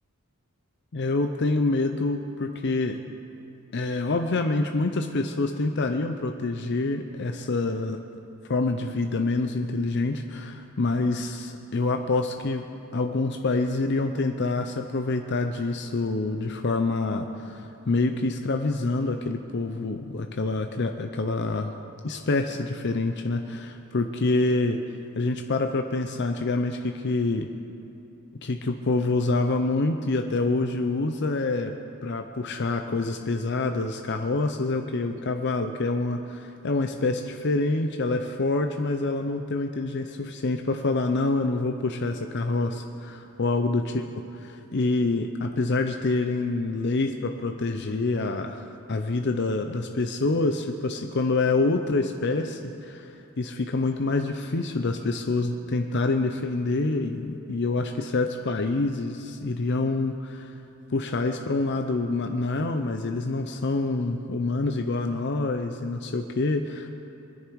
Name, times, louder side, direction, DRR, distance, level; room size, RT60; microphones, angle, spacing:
voice 1, 0.9-3.0 3.7-8.0 8.5-12.6 12.9-21.7 22.0-24.8 25.2-27.5 28.4-31.7 32.0-60.5 60.9-66.9, left 3 dB, 50° left, 6 dB, 0.6 m, -26 dB
24.0 x 10.5 x 4.7 m, 2.8 s
head